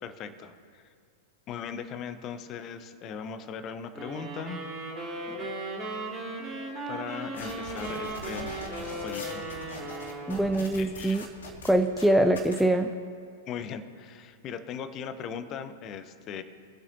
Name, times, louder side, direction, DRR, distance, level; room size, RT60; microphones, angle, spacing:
voice 1, 0.0-0.8 1.5-4.6 6.9-8.6 9.0-9.5 10.8-11.2 13.5-16.4, left 7 dB, 30° left, 11 dB, 0.8 m, -39 dB
sound 1, 3.9-10.8, right 2 dB, 25° right, 3.2 m, -37 dB
sound 2, 7.3-12.6, left 1 dB, 65° left, 2.5 m, -41 dB
voice 2, 10.3-11.3 11.6-12.9, right 1 dB, ahead, 5 dB, 0.4 m, -23 dB
24.0 x 8.3 x 2.7 m, 2.3 s
figure-of-eight pair, 100°, 0 cm